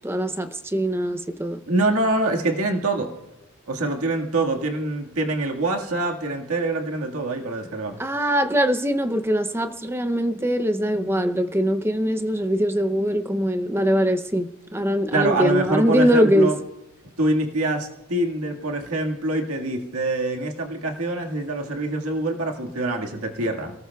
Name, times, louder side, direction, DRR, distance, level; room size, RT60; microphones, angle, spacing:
voice 1, 0.0-1.6 8.0-16.5, equal, 10° right, 0.6 m, -22 dB
voice 2, 1.7-3.1 3.7-8.0 15.1-16.6 17.2-23.7, right 2 dB, 80° right, 1.8 m, -25 dB
28.5 x 18.0 x 2.3 m
head